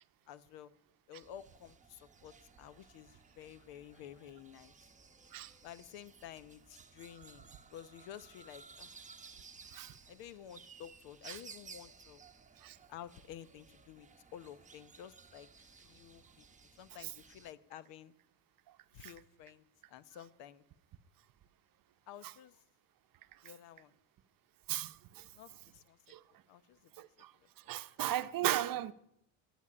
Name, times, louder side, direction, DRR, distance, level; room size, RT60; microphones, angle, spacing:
voice 1, 0.3-0.7 1.1-4.7 5.6-8.9 10.1-12.2 12.9-16.4 16.8-18.1 18.9-20.6 22.1-22.6 23.4-23.9 25.3-26.0 26.5-26.9, left 10 dB, 70° left, 1.0 m, -52 dB
sound 1, 1.2-17.5, right 5 dB, 15° right, 1.1 m, -57 dB
voice 2, 24.7-25.3 26.1-26.2 27.0-27.3 27.7-28.9, right 14 dB, 50° right, 0.8 m, -36 dB
11.0 x 9.3 x 9.9 m
supercardioid pair, 90°, 45 cm